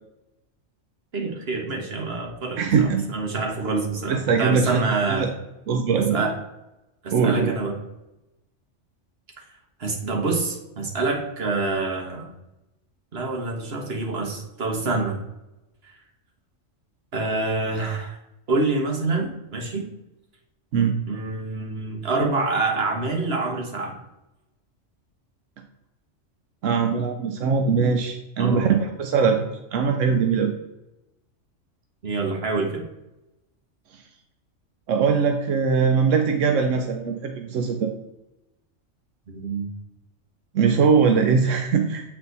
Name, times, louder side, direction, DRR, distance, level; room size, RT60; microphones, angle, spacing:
voice 1, 1.1-5.3 6.0-6.3 7.0-7.8 9.8-12.3 13.1-15.2 15.8-16.0 17.1-18.2 18.5-19.9 21.1-24.0 28.4-28.7 32.0-32.8 39.3-39.7, right 3 dB, 55° right, 1 dB, 1.6 m, -26 dB
voice 2, 2.6-3.0 4.1-4.8 5.1-5.3 5.7-6.2 7.1-7.5 20.7-20.9 26.6-29.4 29.7-30.5 34.9-37.9 40.5-42.0, right 5 dB, 85° right, 4 dB, 1.1 m, -21 dB
8.0 x 4.2 x 4.0 m, 0.92 s
omnidirectional pair, 1.3 m